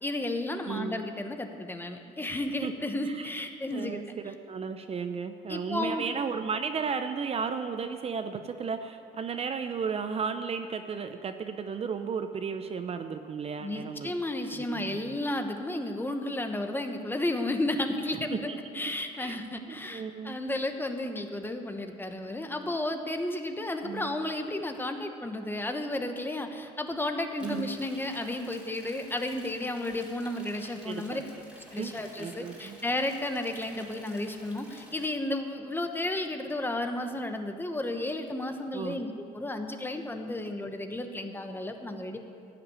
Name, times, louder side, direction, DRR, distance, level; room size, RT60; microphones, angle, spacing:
voice 1, 0.0-4.0 5.5-6.0 13.6-18.4 18.7-31.2 31.6-42.2, left 1 dB, 10° left, 5 dB, 1.1 m, -33 dB
voice 2, 0.6-1.0 2.6-3.3 3.7-14.1 14.5-15.2 18.3-18.6 19.1-19.4 19.7-20.4 23.8-24.2 27.4-27.8 30.9-31.2 31.8-32.8 38.7-39.0, right 6 dB, 35° right, 8 dB, 0.7 m, -34 dB
sound 1, 27.4-35.1, equal, 5° right, 2.9 m, -51 dB
15.5 x 5.9 x 9.7 m, 2.4 s
cardioid pair, 110°, 17 cm